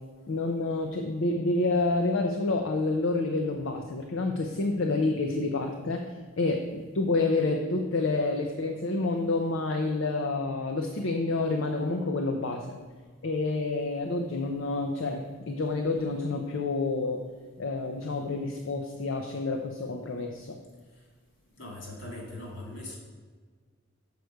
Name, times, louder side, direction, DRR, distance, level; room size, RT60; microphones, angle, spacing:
voice 1, 0.3-6.0 6.4-12.8 13.2-17.2 17.6-20.6, left 3 dB, 75° left, 3 dB, 0.6 m, -28 dB
voice 2, 21.6-23.0, left 1 dB, 60° left, -1 dB, 2.4 m, -40 dB
6.8 x 4.6 x 6.4 m, 1.5 s
head